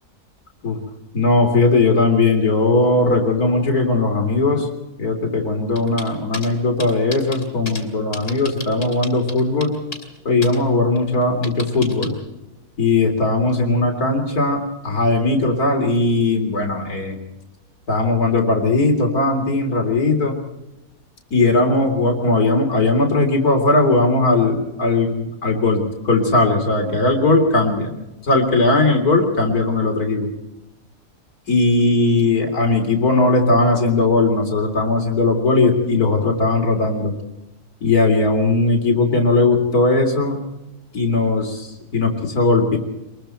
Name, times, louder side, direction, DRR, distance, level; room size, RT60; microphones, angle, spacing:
voice 1, 1.1-4.7 5.0-9.8 10.3-12.2 12.8-17.2 17.9-20.4 21.3-27.9 28.2-30.3 31.5-37.1 37.8-40.4 40.9-42.8, left 2 dB, 75° left, 3 dB, 4.0 m, -18 dB
sound 1, 5.8-6.5 6.8-7.8 8.1-10.2 10.4-10.6 11.0-12.1, left 2 dB, 50° left, 4.4 m, -32 dB
27.0 x 21.5 x 4.6 m, 0.97 s
omnidirectional pair, 1.6 m